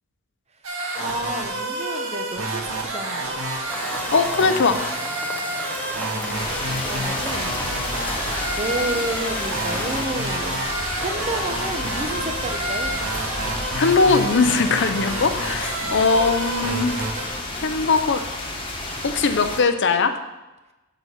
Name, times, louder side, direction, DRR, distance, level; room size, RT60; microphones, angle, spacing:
sound 1, 0.6-17.3, right 1 dB, 75° right, 1.8 m, -29 dB
voice 1, 1.0-3.4 6.0-7.5 8.6-10.7 11.0-13.1 15.8-15.9, right 2 dB, 30° right, 6 dB, 0.8 m, -31 dB
sound 2, 3.7-10.1, left 1 dB, 10° left, 0.7 m, -34 dB
voice 2, 4.1-4.8 13.7-17.0 17.6-18.2 19.0-20.1, left 4 dB, 60° left, 9 dB, 0.6 m, -20 dB
sound 3, 6.3-19.6, left 2 dB, 25° left, 1.4 m, -31 dB
9.1 x 4.1 x 7.2 m, 1.1 s
head